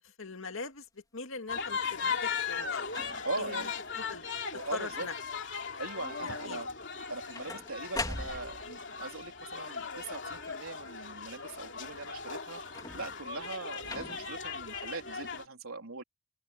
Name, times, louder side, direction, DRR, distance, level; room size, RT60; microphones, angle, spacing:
voice 1, 0.0-2.9 3.4-3.7 4.0-4.2 4.7-5.1 6.2-6.6, left 4 dB, 70° left, 2.1 m, -42 dB
sound 1, 1.5-15.5, left 5 dB, 55° left, 3.2 m, -38 dB
sound 2, 1.9-2.3 2.9-3.4 4.0-4.4 4.7-5.2 6.9-8.8 12.6-13.3 13.9-14.4 15.3-15.4, left 2 dB, 20° left, 4.3 m, -42 dB
voice 2, 3.2-3.7 4.5-5.1 5.8-6.7 7.1-12.6 12.9-16.0, right 3 dB, 85° right, 3.9 m, -41 dB
open air
head